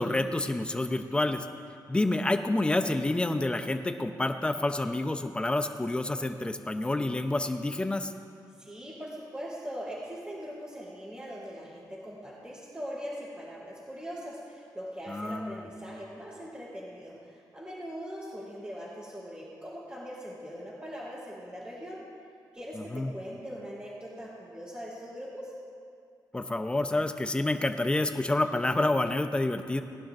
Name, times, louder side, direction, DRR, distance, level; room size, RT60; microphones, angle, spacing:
voice 1, 0.0-1.4 1.9-8.1 15.1-15.7 22.7-23.1 26.3-29.8, left 2 dB, 15° left, 8 dB, 0.6 m, -28 dB
voice 2, 8.6-22.0 22.5-25.6, equal, 15° right, -10 dB, 3.5 m, -41 dB
20.5 x 11.5 x 2.6 m, 2.4 s
wide cardioid pair, 130°, 8 cm